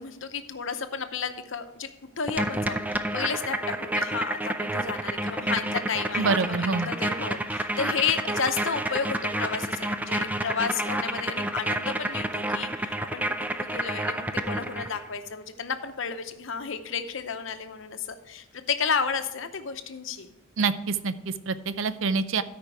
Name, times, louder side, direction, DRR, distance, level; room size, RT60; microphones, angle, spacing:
voice 1, 0.0-13.2 13.6-20.3, left 6 dB, 65° left, 8 dB, 0.8 m, -32 dB
sound 1, 2.3-15.1, right 1 dB, 10° right, 0.4 m, -29 dB
voice 2, 6.2-6.9 20.6-22.4, right 4 dB, 65° right, 13 dB, 0.5 m, -26 dB
13.0 x 5.2 x 4.6 m, 0.95 s
head